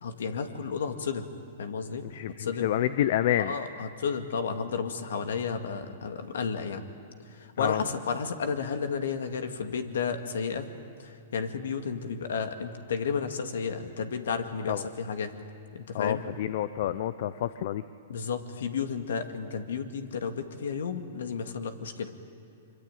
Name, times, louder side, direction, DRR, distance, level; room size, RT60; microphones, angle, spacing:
voice 1, 0.0-1.3 1.6-2.0 2.4-2.7 3.4-6.8 7.3-10.7 11.0-15.3 15.7-16.2 18.1-22.1, left 6 dB, 75° left, 7 dB, 2.2 m, -32 dB
voice 2, 2.1-3.5 7.6-7.8 14.7-14.8 15.9-17.8, left 12 dB, 60° left, 14 dB, 0.7 m, -28 dB
25.0 x 24.5 x 9.2 m, 2.5 s
hypercardioid pair, 125°, 0 cm